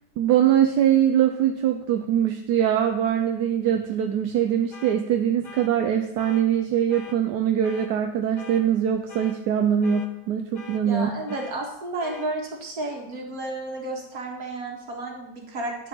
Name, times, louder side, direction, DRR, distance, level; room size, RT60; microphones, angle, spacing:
voice 1, 0.2-11.1, right 9 dB, 75° right, 5 dB, 1.1 m, -22 dB
sound 1, 4.7-5.0 5.4-5.7 6.2-6.4 6.9-7.2 7.6-7.9 8.4-8.6 9.1-9.4 9.8-10.1 10.5-10.8 11.3-11.5 12.0-12.3, left 5 dB, 70° left, 1.5 m, -42 dB
voice 2, 10.9-15.9, right 2 dB, 55° right, 0 dB, 2.2 m, -32 dB
10.5 x 5.2 x 5.4 m, 0.82 s
omnidirectional pair, 1.9 m